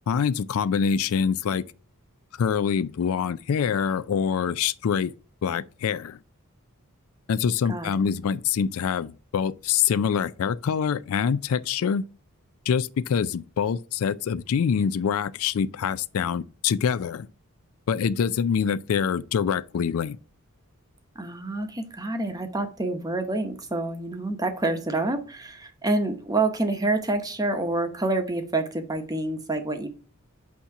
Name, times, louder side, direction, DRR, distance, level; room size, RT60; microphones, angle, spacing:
voice 1, 0.1-1.6 2.3-5.1 5.4-6.2 7.3-12.1 12.7-17.3 17.9-20.2, left 7 dB, 70° left, 0.3 m, -25 dB
voice 2, 21.1-29.9, right 2 dB, 15° right, 0.8 m, -27 dB
8.4 x 2.8 x 4.6 m
head